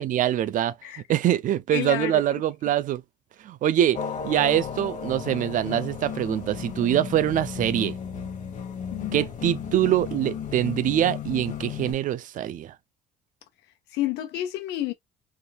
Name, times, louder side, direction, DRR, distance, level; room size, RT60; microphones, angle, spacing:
voice 1, 0.0-0.7 1.1-3.0 3.4-4.0 4.2-8.0 9.1-12.7, right 11 dB, 50° right, 0.4 m, -24 dB
voice 2, 1.7-2.2 8.9-9.3 13.9-14.9, left 14 dB, 90° left, 0.9 m, -29 dB
sound 1, 3.9-11.9, left 7 dB, 50° left, 1.2 m, -34 dB
3.4 x 2.9 x 2.2 m
cardioid pair, 110°, 17 cm